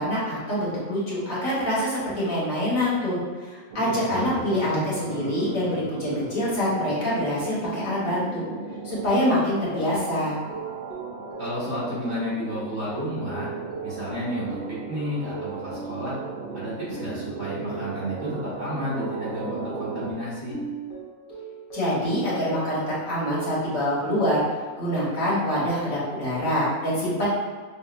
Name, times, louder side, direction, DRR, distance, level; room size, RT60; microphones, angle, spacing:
voice 1, 0.0-8.4 8.8-10.4 21.7-24.4 24.8-27.3, equal, 65° left, -8 dB, 1.7 m, -25 dB
sound 1, 3.7-20.1, right 4 dB, 85° right, 0.4 m, -37 dB
voice 2, 4.1-4.9 11.4-13.5 13.8-16.2 16.5-20.6, equal, 35° right, -11 dB, 1.7 m, -32 dB
sound 2, 8.8-23.6, right 5 dB, 40° left, 1.1 m, -39 dB
6.1 x 2.5 x 2.5 m, 1.4 s
omnidirectional pair, 1.5 m